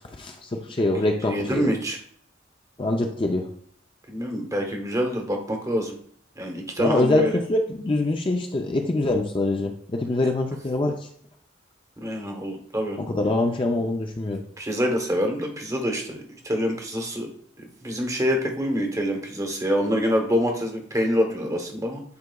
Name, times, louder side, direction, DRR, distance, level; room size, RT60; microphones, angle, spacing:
voice 1, 0.2-1.7 2.8-3.5 6.8-11.0 13.0-14.4, left 2 dB, 25° left, 3 dB, 0.5 m, -24 dB
voice 2, 1.3-2.0 4.1-6.0 6.4-7.4 10.2-10.3 12.0-13.0 14.6-17.3 17.8-22.0, equal, 15° right, 3 dB, 0.9 m, -26 dB
9.5 x 4.7 x 2.3 m, 0.62 s
head